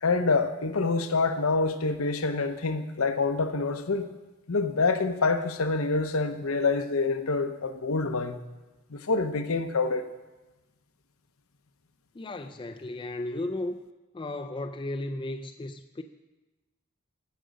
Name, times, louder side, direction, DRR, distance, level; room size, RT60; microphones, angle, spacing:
voice 1, 0.0-4.0 4.5-8.4 8.9-10.0, left 3 dB, 80° left, 8 dB, 0.8 m, -26 dB
voice 2, 12.1-13.8 14.1-16.0, left 2 dB, 20° left, 6 dB, 0.3 m, -34 dB
15.0 x 5.2 x 6.4 m, 1.1 s
head